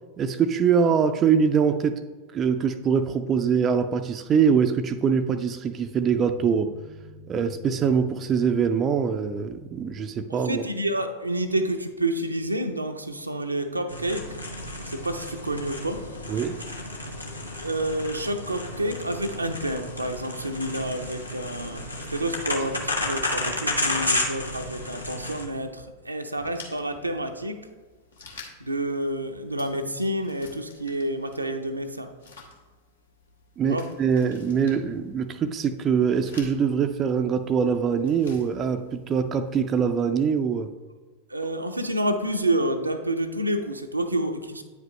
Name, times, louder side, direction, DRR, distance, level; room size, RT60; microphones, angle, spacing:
voice 1, 0.2-2.0 2.3-6.7 7.3-10.6 16.3-16.6 33.6-40.7, right 6 dB, 25° right, 8 dB, 0.4 m, -23 dB
sound 1, 6.4-10.6, left 4 dB, 30° left, 0.7 m, -48 dB
voice 2, 10.3-14.3 14.8-16.0 17.6-27.6 28.6-32.1 33.7-33.9 41.3-44.6, right 1 dB, 85° right, 5 dB, 0.5 m, -29 dB
sound 2, 13.9-25.5, left 1 dB, 85° left, 0.9 m, -32 dB
sound 3, 26.4-39.7, left 3 dB, 70° left, 1.2 m, -50 dB
8.9 x 5.1 x 3.2 m, 1.3 s
figure-of-eight pair, 90°, 0 cm